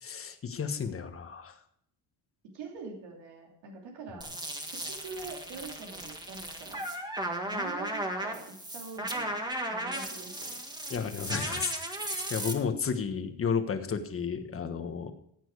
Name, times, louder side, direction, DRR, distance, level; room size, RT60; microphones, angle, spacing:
voice 1, 0.0-1.5 10.9-11.7 12.3-15.1, left 6 dB, 30° left, 7 dB, 1.4 m, -32 dB
voice 2, 2.5-4.3 4.7-6.9 7.4-9.4 9.7-10.6, right 4 dB, 85° right, 0 dB, 3.1 m, -44 dB
sound 1, 4.2-12.5, right 1 dB, 10° right, 1.6 m, -36 dB
15.0 x 9.0 x 4.8 m, 0.71 s
cardioid pair, 150°, 41 cm